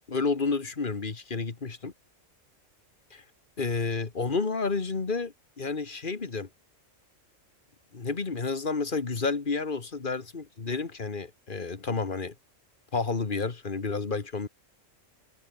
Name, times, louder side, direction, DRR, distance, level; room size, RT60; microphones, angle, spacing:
voice 1, 0.1-1.9 3.1-3.2 3.6-6.5 7.9-12.3 12.9-14.5, left 4 dB, 40° left, 1.7 m, -30 dB
omnidirectional pair, 1.3 m